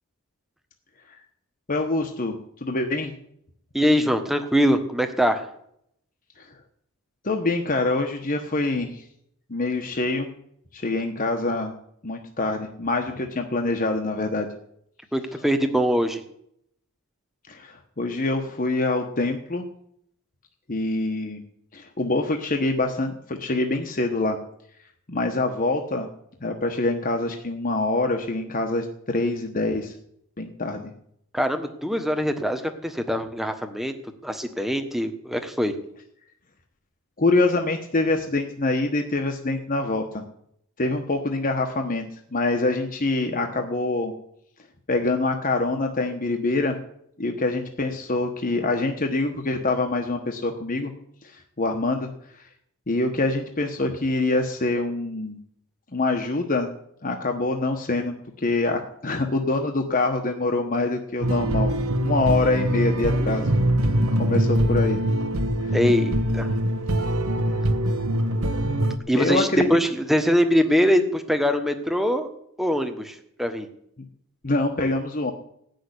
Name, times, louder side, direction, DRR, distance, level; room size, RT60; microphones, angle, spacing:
voice 1, 1.7-2.4 2.6-3.1 6.4-6.5 7.2-9.0 9.5-10.3 10.7-11.7 12.0-14.5 17.5-19.6 20.7-21.4 21.7-24.4 25.1-26.1 26.4-29.9 30.4-30.9 37.2-40.2 40.8-42.0 42.3-44.1 44.9-46.8 47.2-50.9 51.2-52.1 52.9-55.4 55.9-56.7 57.0-61.8 62.0-63.6 64.2-65.0 65.6-65.8 67.5-67.6 69.1-69.7 74.4-75.3, left 2 dB, 40° left, 4 dB, 1.2 m, -25 dB
voice 2, 3.7-5.5 15.1-16.2 31.3-33.9 34.2-35.7 65.7-66.5 69.1-72.3 72.6-73.7, equal, ahead, 6 dB, 1.3 m, -23 dB
sound 1, 61.2-69.0, right 1 dB, 75° right, 1.3 m, -23 dB
16.5 x 6.6 x 9.8 m, 0.73 s
head